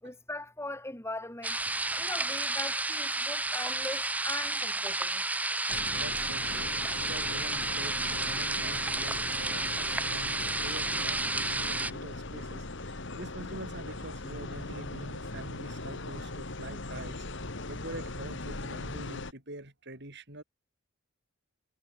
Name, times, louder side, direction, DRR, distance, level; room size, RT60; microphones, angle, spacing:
voice 1, 0.0-1.6 2.0-5.2, left 2 dB, 10° left, 3.2 m, -40 dB
sound 1, 1.4-11.9, right 2 dB, 5° right, 0.5 m, -31 dB
sound 2, 5.7-19.3, left 2 dB, 60° left, 2.3 m, -40 dB
voice 2, 5.9-17.3 17.7-20.4, right 1 dB, 55° right, 7.8 m, -45 dB
head